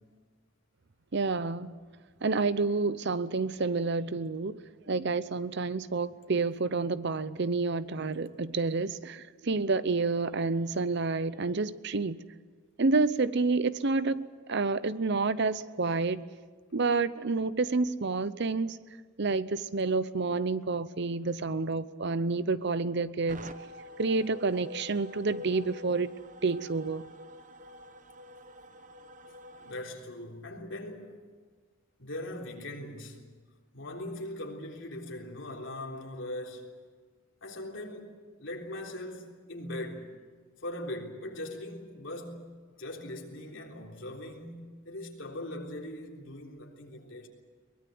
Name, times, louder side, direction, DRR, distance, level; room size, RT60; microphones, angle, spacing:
voice 1, 1.1-1.7 2.2-4.6 4.9-12.2 12.8-16.2 16.7-18.8 19.2-23.4 24.0-26.1 26.4-27.0, right 3 dB, 60° right, 0.7 m, -29 dB
sound 1, 23.3-29.8, left 1 dB, 40° right, 1.0 m, -47 dB
voice 2, 29.6-31.1 32.0-33.2 33.7-36.7 37.4-40.1 40.6-47.3, left 1 dB, 65° left, 3.7 m, -40 dB
23.0 x 20.5 x 7.9 m
head